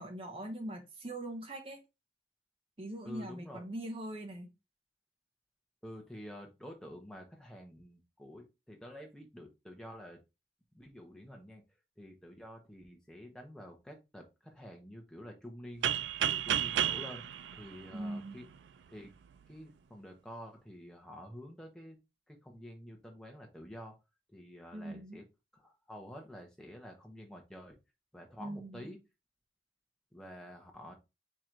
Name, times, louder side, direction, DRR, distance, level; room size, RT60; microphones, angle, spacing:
voice 1, 0.0-1.8 2.8-4.5 17.9-18.4 24.7-25.2 28.4-28.9, right 1 dB, 30° right, 0.7 m, -41 dB
voice 2, 3.0-3.6 5.8-10.2 10.7-11.6 12.0-15.9 16.2-17.3 17.5-18.4 18.9-19.1 19.5-22.0 22.3-24.0 24.3-25.2 25.5-27.8 28.1-29.0 30.1-30.9, equal, 5° left, 0.9 m, -49 dB
sound 1, 15.8-18.6, right 9 dB, 85° right, 0.3 m, -32 dB
4.6 x 3.0 x 3.7 m
head